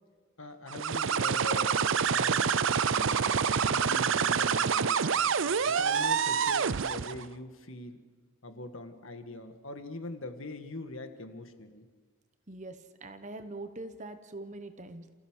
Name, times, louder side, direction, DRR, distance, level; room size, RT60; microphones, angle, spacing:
voice 1, 0.4-1.7 2.1-2.4 2.9-3.3 3.7-5.0 5.7-8.0 8.4-11.8, left 2 dB, 70° left, 7 dB, 1.8 m, -42 dB
sound 1, 0.7-7.2, right 6 dB, 65° right, 0.6 m, -27 dB
voice 2, 12.5-15.1, right 2 dB, 35° right, 9 dB, 1.1 m, -43 dB
29.0 x 15.5 x 6.5 m, 1.5 s
head